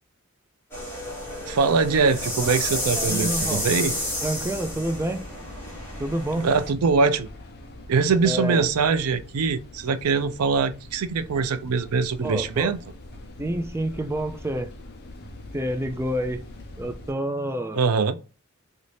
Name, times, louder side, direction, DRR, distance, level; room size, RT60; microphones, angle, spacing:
sound 1, 0.7-6.7, left 1 dB, 10° left, 1.3 m, -30 dB
voice 1, 1.5-3.9 6.4-7.3 7.9-12.8 17.7-18.2, right 5 dB, 80° right, 0.5 m, -23 dB
sound 2, 2.1-17.1, left 1 dB, 50° left, 0.7 m, -43 dB
voice 2, 2.9-3.7 4.2-5.3 6.0-6.5 8.2-8.7 12.2-12.7 13.4-14.7 15.5-16.4 16.8-17.8, right 1 dB, 10° right, 0.3 m, -28 dB
3.1 x 2.7 x 3.2 m
head